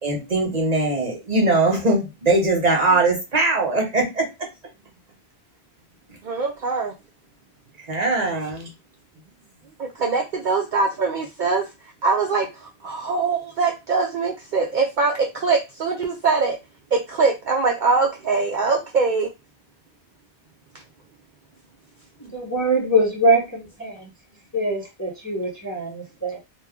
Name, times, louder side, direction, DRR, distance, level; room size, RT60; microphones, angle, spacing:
voice 1, 0.0-4.3 7.8-8.7, right 2 dB, 40° right, 0 dB, 0.9 m, -21 dB
voice 2, 6.2-6.9 9.8-11.6 12.0-16.6 16.9-19.3, right 4 dB, 55° right, 2 dB, 0.6 m, -22 dB
voice 3, 22.2-24.1 24.5-26.4, right 1 dB, 20° left, -2 dB, 0.7 m, -23 dB
3.0 x 2.2 x 3.5 m, 0.25 s
omnidirectional pair, 1.1 m